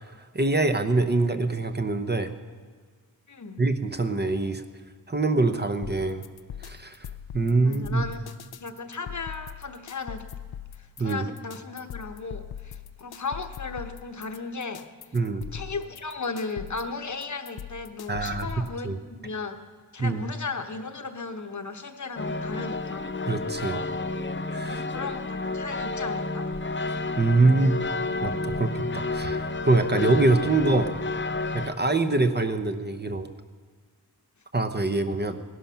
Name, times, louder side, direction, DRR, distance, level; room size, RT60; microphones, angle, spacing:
voice 1, 0.3-2.3 3.6-4.6 5.1-6.2 6.6-7.1 7.3-8.1 11.0-11.3 15.1-15.5 18.1-18.5 18.8-19.0 20.0-20.2 23.3-23.8 24.5-24.8 26.9-27.8 28.2-30.9 31.5-33.3 34.5-35.4, right 3 dB, 25° right, 8 dB, 0.8 m, -24 dB
voice 2, 3.3-3.6 7.6-10.2 10.8-14.8 15.5-19.6 19.9-23.1 24.6-26.5, left 4 dB, 50° left, 7 dB, 1.1 m, -36 dB
sound 1, 5.8-18.8, left 9 dB, 75° left, 0.6 m, -41 dB
sound 2, 22.2-31.7, left 3 dB, 30° left, 0.6 m, -30 dB
18.0 x 11.5 x 5.7 m, 1.5 s
wide cardioid pair, 120°, 38 cm